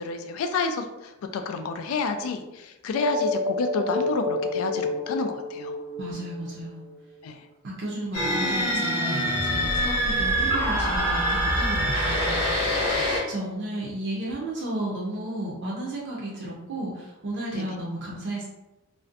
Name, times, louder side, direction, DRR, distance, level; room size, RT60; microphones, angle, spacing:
voice 1, 0.0-5.8 7.2-7.5 9.7-10.0 10.4-10.5 12.9-13.1 17.5-17.7, left 4 dB, 70° left, 7 dB, 0.3 m, -30 dB
sound 1, 2.9-6.9, left 2 dB, 5° right, 0.7 m, -29 dB
voice 2, 6.0-6.9 7.6-12.7 13.3-18.4, right 1 dB, 55° right, -5 dB, 0.5 m, -33 dB
sound 2, 8.1-13.2, equal, 85° left, 0.9 m, -24 dB
2.5 x 2.1 x 2.4 m, 1.0 s
head